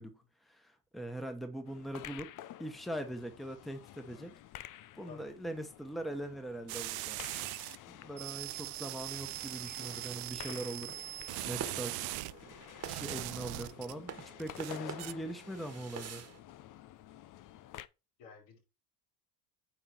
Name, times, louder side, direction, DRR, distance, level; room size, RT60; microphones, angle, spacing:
voice 1, 0.0-2.3 2.6-4.3 4.9-7.2 7.9-11.0 11.4-12.0 12.4-12.5 12.8-16.2, right 1 dB, ahead, 1.3 m, -41 dB
sound 1, 1.6-17.9, left 13 dB, 40° left, 0.6 m, -51 dB
voice 2, 4.7-5.3 8.0-8.1 18.2-18.6, left 6 dB, 80° left, 4.9 m, -54 dB
sound 2, 6.7-7.8 8.2-12.3 12.8-13.9 14.4-15.1, right 21 dB, 50° right, 0.6 m, -40 dB
sound 3, 10.2-16.4, right 7 dB, 30° right, 1.6 m, -48 dB
9.3 x 3.8 x 4.5 m
hypercardioid pair, 80°, 49 cm